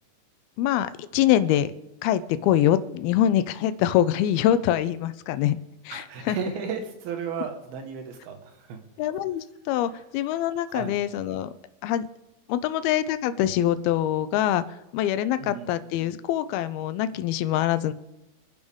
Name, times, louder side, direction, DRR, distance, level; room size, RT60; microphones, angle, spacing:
voice 1, 0.6-1.7 2.0-5.6 5.9-6.4 9.0-11.5 11.8-12.1 12.5-14.6 14.9-17.9, left 11 dB, 85° left, 13 dB, 2.6 m, -24 dB
voice 2, 5.9-8.8 10.7-11.0 15.4-15.7, right 6 dB, 80° right, 5 dB, 3.4 m, -34 dB
26.5 x 10.5 x 3.6 m, 0.97 s
omnidirectional pair, 4.3 m